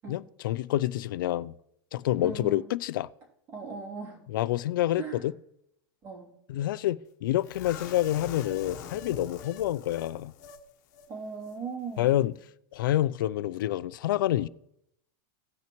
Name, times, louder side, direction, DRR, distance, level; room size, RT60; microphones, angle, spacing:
voice 1, 0.1-1.5 1.9-3.1 4.3-5.3 6.5-10.3 12.0-12.3 12.7-14.5, left 14 dB, 90° left, 0.4 m, -28 dB
voice 2, 2.2-2.6 3.5-4.2 4.9-5.2 6.0-6.3 11.1-12.3, right 5 dB, 25° right, 2.9 m, -38 dB
sound 1, 7.4-10.6 10.9-11.1 11.4-11.6, left 7 dB, 55° left, 1.1 m, -44 dB
17.0 x 5.8 x 3.0 m
supercardioid pair, 170°, 11 cm